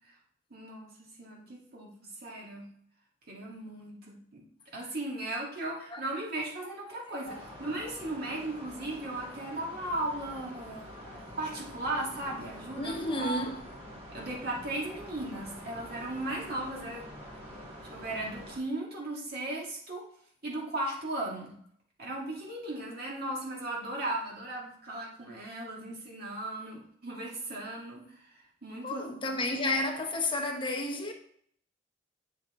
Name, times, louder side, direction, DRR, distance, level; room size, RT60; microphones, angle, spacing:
voice 1, 0.5-0.9 1.2-2.7 3.3-4.5 4.7-10.9 11.4-13.5 14.1-17.0 17.9-20.0 20.4-21.5 22.0-29.2, right 1 dB, 55° right, 2.1 m, -37 dB
voice 2, 6.9-7.4 11.0-11.2 12.8-13.6 28.8-31.1, left 2 dB, 25° left, 1.2 m, -32 dB
sound 1, 7.2-18.6, equal, 30° right, 2.0 m, -46 dB
8.3 x 5.8 x 3.7 m
head